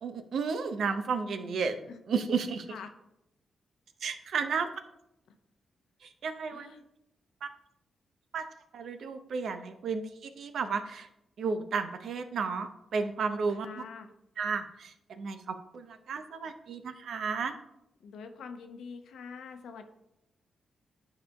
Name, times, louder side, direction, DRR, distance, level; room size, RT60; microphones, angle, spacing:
voice 1, 0.0-2.7 4.0-4.7 6.0-6.7 7.4-7.5 8.3-8.4 8.7-11.1 11.4-13.8 14.4-17.5, right 5 dB, 70° right, 8 dB, 0.6 m, -33 dB
voice 2, 1.3-2.0 2.7-2.9 6.5-6.8 13.6-14.1 18.0-19.9, left 5 dB, 75° left, 7 dB, 0.6 m, -45 dB
11.0 x 4.7 x 2.2 m, 0.85 s
hypercardioid pair, 45°, 0 cm